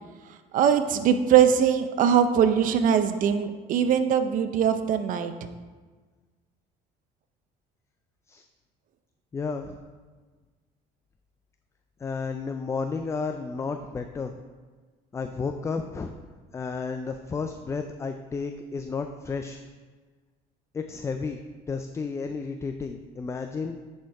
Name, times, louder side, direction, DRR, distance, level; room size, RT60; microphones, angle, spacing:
voice 1, 0.5-5.3, right 8 dB, 55° right, 9 dB, 0.7 m, -21 dB
voice 2, 9.3-9.8 12.0-14.4 15.1-16.1 16.5-19.6 20.7-21.4 21.7-23.8, left 4 dB, 20° left, 6 dB, 0.4 m, -32 dB
9.4 x 4.4 x 4.7 m, 1.4 s
cardioid pair, 125°, 16 cm